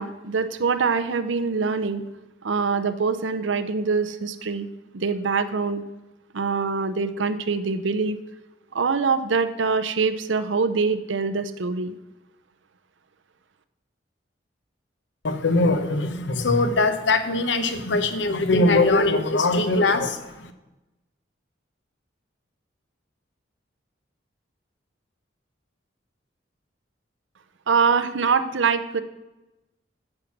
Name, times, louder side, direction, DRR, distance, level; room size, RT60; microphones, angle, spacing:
voice 1, 0.0-2.0 2.4-4.7 4.9-5.8 6.3-8.2 8.7-11.9 27.7-29.0, right 5 dB, 85° right, 11 dB, 0.7 m, -24 dB
voice 2, 15.2-20.5, left 2 dB, 75° left, 9 dB, 0.9 m, -21 dB
8.8 x 7.5 x 5.9 m, 1.0 s
head